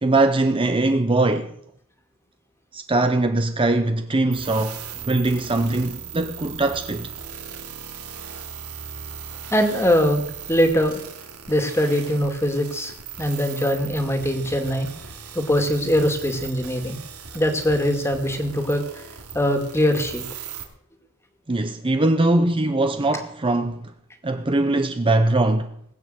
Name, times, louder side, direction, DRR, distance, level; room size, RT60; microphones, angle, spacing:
voice 1, 0.0-1.5 2.7-7.1 21.5-23.9 24.2-25.7, right 2 dB, 25° right, 0.7 m, -21 dB
sound 1, 4.3-20.6, right 7 dB, 85° right, 2.8 m, -38 dB
voice 2, 9.5-10.2 10.5-10.9 11.5-12.9 13.2-14.9 15.3-17.0 17.3-18.8 19.3-20.2, equal, 10° left, 2.2 m, -21 dB
19.5 x 8.3 x 7.8 m
head